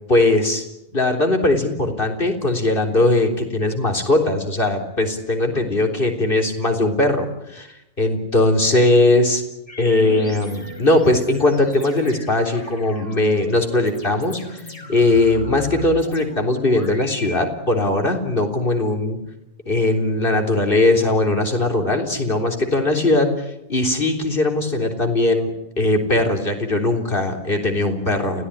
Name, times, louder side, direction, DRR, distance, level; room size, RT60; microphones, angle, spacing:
voice 1, 0.1-0.6 0.9-7.7 8.0-9.4 9.8-14.6 14.9-19.2 19.7-25.5 25.8-28.4, left 2 dB, 40° left, 4 dB, 3.9 m, -19 dB
sound 1, 9.7-17.4, equal, 25° left, 4.4 m, -38 dB
29.5 x 17.0 x 10.0 m, 0.87 s
omnidirectional pair, 1.4 m